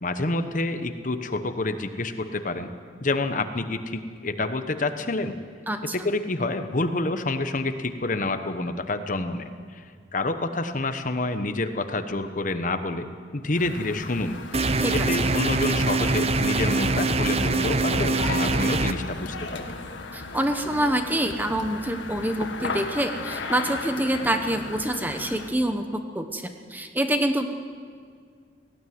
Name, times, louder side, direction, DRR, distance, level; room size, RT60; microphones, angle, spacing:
voice 1, 0.0-2.7 3.0-5.3 5.8-9.8 10.1-13.1 13.3-14.4 14.9-19.8, left 2 dB, 45° left, 9 dB, 1.1 m, -28 dB
sound 1, 13.5-25.5, left 3 dB, 85° left, 1.7 m, -36 dB
sound 2, 14.5-18.9, right 3 dB, 35° right, 0.7 m, -23 dB
voice 2, 20.1-27.5, right 1 dB, 10° right, 7 dB, 1.0 m, -26 dB
18.5 x 15.5 x 9.4 m, 2.1 s
head